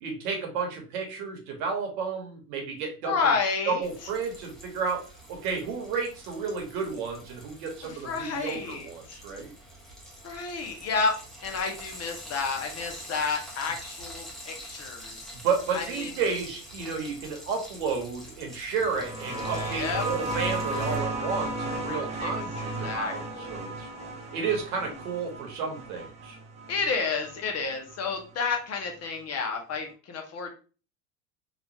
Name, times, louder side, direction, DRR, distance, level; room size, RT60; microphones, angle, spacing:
voice 1, 0.0-3.2 3.7-9.5 15.4-23.9 24.3-26.4, right 5 dB, 65° right, 3 dB, 1.1 m, -32 dB
voice 2, 3.0-3.8 7.8-9.2 10.2-11.1 11.4-15.3 15.7-16.1 19.5-20.0 22.2-22.3 22.8-23.7 26.7-30.5, left 5 dB, 35° left, 3 dB, 0.7 m, -30 dB
Frying (food), 3.8-21.0, equal, ahead, 0.8 m, -46 dB
sound 1, 18.8-28.1 29.2-29.3, right 2 dB, 15° right, 0.4 m, -34 dB
3.0 x 2.4 x 2.6 m, 0.36 s
hypercardioid pair, 90°, 47 cm